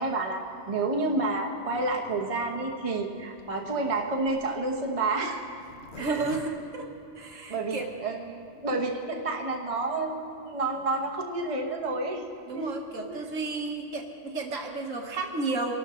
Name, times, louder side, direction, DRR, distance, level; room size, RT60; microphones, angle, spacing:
voice 1, 0.0-5.4 6.0-6.3 7.3-12.2 12.5-12.7 13.1-13.2, right 2 dB, 25° right, 0 dB, 1.2 m, -30 dB
Zipper (clothing), 3.3-7.6 8.1-8.2 8.4-8.5 8.7-9.1, left 4 dB, 55° left, 1.1 m, -48 dB
voice 2, 5.9-6.9 7.2-7.9 12.5-15.7, right 3 dB, 70° right, 1 dB, 1.8 m, -32 dB
24.5 x 12.0 x 3.8 m, 2.5 s
omnidirectional pair, 1.4 m